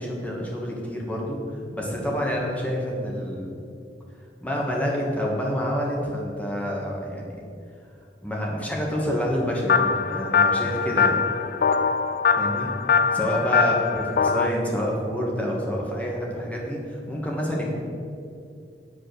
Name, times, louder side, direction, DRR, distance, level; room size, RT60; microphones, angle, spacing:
voice 1, 0.0-3.6 4.4-7.4 8.2-11.2 12.3-12.7 13.1-17.8, equal, 10° left, -2 dB, 1.3 m, -28 dB
sound 1, 9.7-14.5, left 5 dB, 55° left, 0.4 m, -22 dB
9.8 x 4.9 x 6.6 m, 2.4 s
head